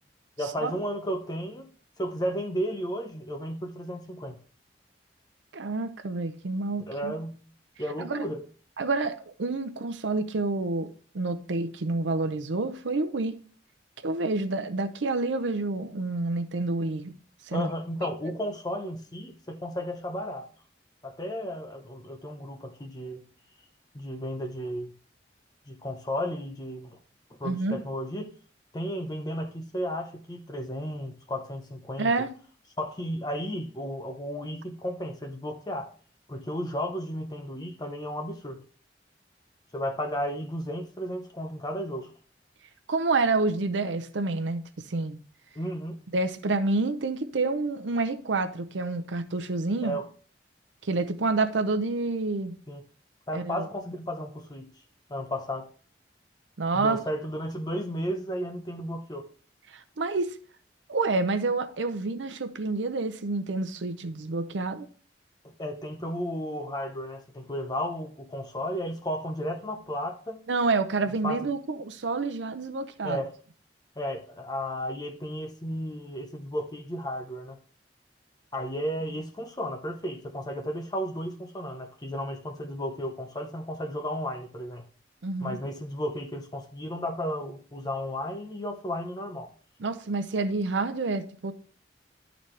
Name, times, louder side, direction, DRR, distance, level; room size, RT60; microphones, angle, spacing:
voice 1, 0.4-1.7 2.0-4.4 6.8-7.4 7.8-8.4 17.5-20.5 21.0-23.2 23.9-24.9 25.7-27.0 27.3-28.3 28.7-32.1 32.8-35.9 36.3-38.6 39.7-42.1 45.5-46.0 49.8-50.1 52.7-52.8 53.3-54.7 55.1-55.7 56.7-59.3 65.4-70.4 71.1-71.5 73.0-73.3 74.0-77.6 78.5-84.8 85.4-89.5, equal, 20° left, 0.7 m, -33 dB
voice 2, 5.5-7.1 8.0-8.3 8.8-13.4 14.0-17.1 17.5-17.7 18.0-18.1 27.4-27.8 32.0-32.3 42.9-44.6 44.9-45.2 46.1-50.0 50.8-52.6 53.3-53.7 56.6-57.0 59.7-60.3 60.9-64.9 70.5-73.2 85.2-85.6 89.8-91.5, right 3 dB, 85° right, 0.6 m, -28 dB
12.0 x 4.0 x 3.2 m
head